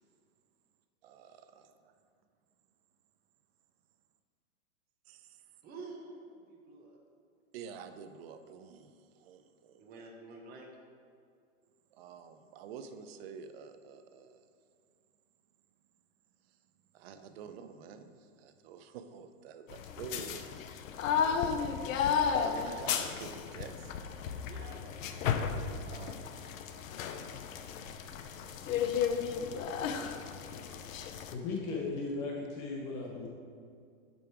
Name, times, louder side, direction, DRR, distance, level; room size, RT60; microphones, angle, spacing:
voice 1, 1.0-1.9 5.1-5.4 7.5-10.1 11.9-14.4 16.9-20.4 21.2-21.9 22.4-23.9 25.9-26.6 27.9-28.3 29.8-30.4, right 6 dB, 45° right, 9 dB, 0.6 m, -49 dB
voice 2, 5.6-7.0 9.8-10.7 24.4-25.0 25.6-26.0, right 3 dB, 20° right, -1 dB, 0.9 m, -49 dB
sound 1, 19.7-31.3, left 7 dB, 70° left, 0.7 m, -34 dB
voice 3, 31.3-33.3, left 3 dB, 40° left, -1 dB, 1.1 m, -36 dB
7.7 x 5.4 x 4.7 m, 2.3 s
supercardioid pair, 145°, 42 cm